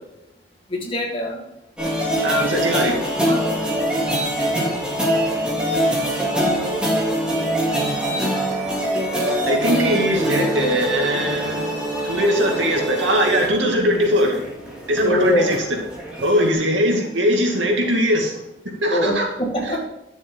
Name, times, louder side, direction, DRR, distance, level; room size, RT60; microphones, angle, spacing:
voice 1, 0.7-1.4 15.0-15.6 18.9-19.9, left 1 dB, 30° left, 0 dB, 2.0 m, -22 dB
sound 1, 1.8-16.5, right 1 dB, 5° right, 2.8 m, -24 dB
voice 2, 2.2-3.4 9.5-14.4 14.9-15.8 16.2-18.4 18.6-19.3 19.6-19.9, equal, 90° right, 1 dB, 2.3 m, -21 dB
11.0 x 7.0 x 3.8 m, 0.93 s
head